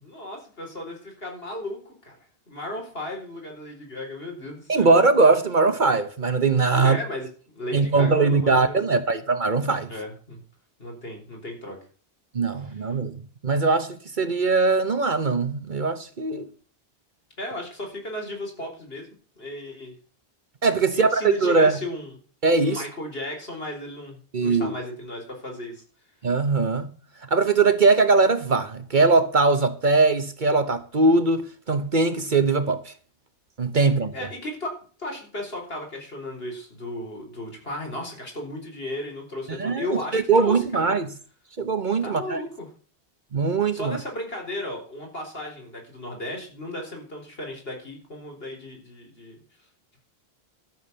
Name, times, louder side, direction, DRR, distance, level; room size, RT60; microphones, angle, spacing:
voice 1, 0.0-2.2 2.5-4.9 6.8-7.3 7.6-8.8 9.9-10.4 10.8-11.8 12.7-12.8 17.4-19.1 19.4-19.9 20.9-22.1 22.6-25.8 34.1-40.8 42.0-42.7 43.7-49.4, left 1 dB, 60° left, 4.6 m, -35 dB
voice 2, 4.7-7.0 7.7-9.9 12.3-16.5 20.6-21.7 22.4-22.8 24.3-24.7 26.2-26.9 27.3-32.9 33.6-34.1 39.6-39.9 40.1-41.1 41.6-42.4 43.3-44.0, right 3 dB, 50° right, 1.1 m, -21 dB
13.5 x 7.2 x 6.9 m
omnidirectional pair, 1.1 m